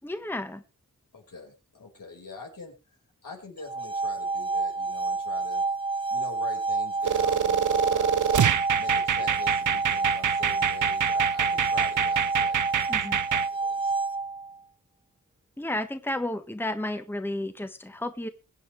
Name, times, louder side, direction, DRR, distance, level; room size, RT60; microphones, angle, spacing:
voice 1, 0.0-0.6 12.9-13.2 15.6-18.3, left 1 dB, 5° left, 9 dB, 1.2 m, -32 dB
voice 2, 1.1-2.7 3.2-5.6 6.1-8.3 8.8-13.9, left 3 dB, 85° left, 0 dB, 4.9 m, -44 dB
sound 1, 3.6-14.6, right 3 dB, 15° right, 0.9 m, -28 dB
sound 2, 7.0-13.5, right 9 dB, 70° right, 0.6 m, -26 dB
22.5 x 8.8 x 3.3 m, 0.30 s
wide cardioid pair, 70°, 32 cm